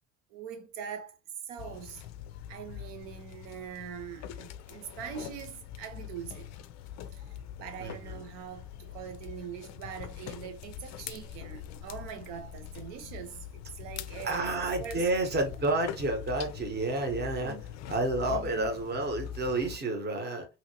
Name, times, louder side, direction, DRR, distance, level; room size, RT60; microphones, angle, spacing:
voice 1, 0.3-1.2 1.4-2.0 2.5-6.5 7.1-15.2 17.4-17.6 18.2-18.7, right 8 dB, 70° right, 0.9 m, -43 dB
sound 1, 1.6-19.8, left 10 dB, 45° left, 0.4 m, -43 dB
voice 2, 7.8-8.2 14.2-17.6 17.9-20.5, right 2 dB, 25° right, 1.0 m, -30 dB
2.8 x 2.7 x 2.8 m
hypercardioid pair, 65°, 37 cm